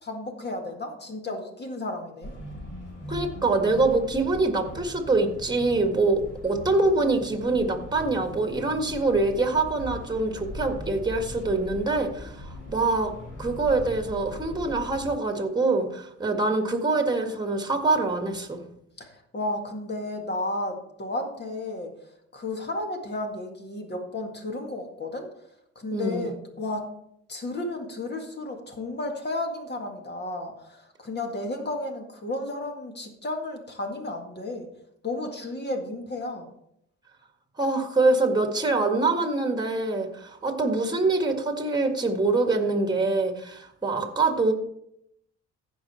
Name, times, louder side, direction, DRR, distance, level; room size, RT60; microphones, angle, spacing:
voice 1, 0.0-2.3 19.0-21.9 22.3-25.3 25.8-26.3 26.6-26.8 27.3-34.7 35.0-36.5, left 2 dB, 35° left, 3 dB, 1.9 m, -33 dB
sound 1, 2.2-15.1, equal, 55° left, 4.5 m, -40 dB
voice 2, 3.1-13.1 13.4-18.6 25.9-26.3 37.6-44.5, right 3 dB, 15° right, 5 dB, 1.7 m, -25 dB
15.0 x 5.3 x 4.3 m, 0.74 s
cardioid pair, 90°, 30 cm